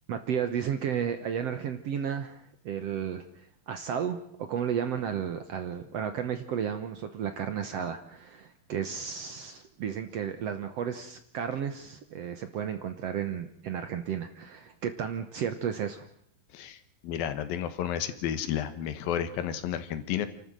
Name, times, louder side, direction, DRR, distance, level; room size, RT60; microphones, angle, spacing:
voice 1, 0.1-16.0, right 8 dB, 65° right, 9 dB, 1.7 m, -33 dB
voice 2, 16.5-20.3, left 9 dB, 85° left, 11 dB, 3.1 m, -32 dB
28.5 x 13.0 x 7.7 m, 0.66 s
omnidirectional pair, 4.0 m